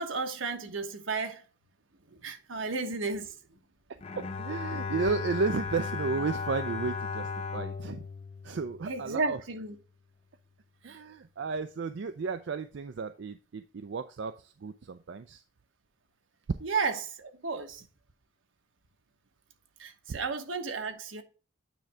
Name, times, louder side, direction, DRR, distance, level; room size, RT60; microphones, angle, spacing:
voice 1, 0.0-1.4 2.1-3.4 8.9-9.8 10.8-11.0 16.6-17.9 19.8-21.2, right 4 dB, 85° right, 1.1 m, -33 dB
Bowed string instrument, 4.0-9.3, left 5 dB, 30° left, 0.6 m, -36 dB
voice 2, 4.2-8.1 8.4-9.4 10.8-15.4 20.1-20.2, right 4 dB, 65° right, 0.4 m, -33 dB
9.0 x 3.3 x 4.8 m
head